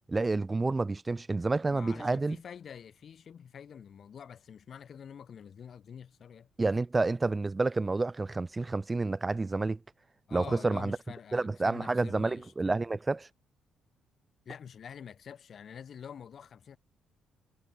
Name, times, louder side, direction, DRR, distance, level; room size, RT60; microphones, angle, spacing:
voice 1, 0.1-2.4 6.6-9.8 10.3-11.0 11.3-13.3, right 3 dB, 20° right, 0.6 m, -29 dB
voice 2, 1.7-6.5 10.3-12.7 14.4-16.8, left 7 dB, 55° left, 6.3 m, -47 dB
cardioid pair, 90°, 0 cm